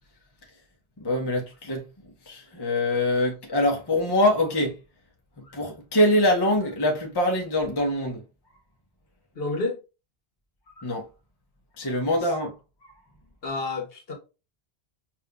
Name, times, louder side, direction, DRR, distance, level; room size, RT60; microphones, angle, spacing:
voice 1, 1.0-1.9 2.3-4.8 5.4-8.2 10.8-11.1 11.8-12.5 12.8-12.9, left 1 dB, 25° left, 0.8 m, -24 dB
voice 2, 9.4-9.8 13.4-14.1, left 3 dB, 65° left, 1.3 m, -29 dB
5.4 x 2.7 x 2.2 m
omnidirectional pair, 1.1 m